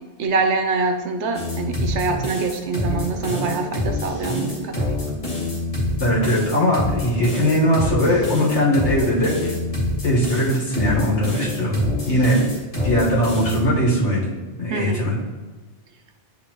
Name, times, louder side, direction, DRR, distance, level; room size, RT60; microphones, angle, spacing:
voice 1, 0.2-5.0 14.7-15.1, right 4 dB, 75° right, 5 dB, 1.0 m, -25 dB
sound 1, 1.3-13.7, left 1 dB, 30° left, 2.0 m, -26 dB
voice 2, 6.0-9.5 10.0-12.4 12.8-15.2, equal, 75° left, -4 dB, 1.8 m, -20 dB
9.7 x 3.5 x 2.9 m, 1.3 s
omnidirectional pair, 1.2 m